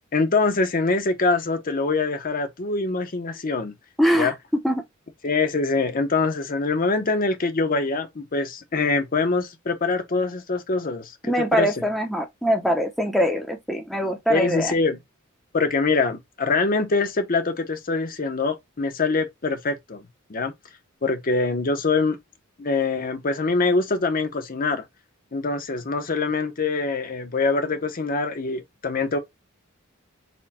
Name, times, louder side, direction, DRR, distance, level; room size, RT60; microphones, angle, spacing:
voice 1, 0.1-3.7 4.1-4.3 5.2-11.7 14.3-15.0 15.5-20.5 21.0-22.2 22.6-24.8 25.3-29.2, left 3 dB, 45° left, 0.7 m, -24 dB
voice 2, 4.0-4.3 4.6-4.8 11.2-14.7, equal, ahead, 0.6 m, -23 dB
4.3 x 2.2 x 4.1 m
head